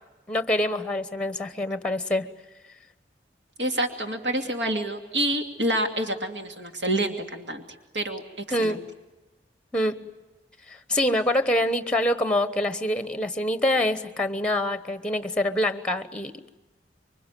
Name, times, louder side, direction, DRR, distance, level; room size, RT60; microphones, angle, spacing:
voice 1, 0.3-2.3 8.5-8.9 9.7-10.1 10.7-16.5, left 1 dB, 5° left, 11 dB, 1.0 m, -25 dB
voice 2, 3.6-7.6 7.9-8.8, right 1 dB, 85° right, 4 dB, 2.6 m, -28 dB
26.5 x 23.5 x 9.1 m, 1.1 s
head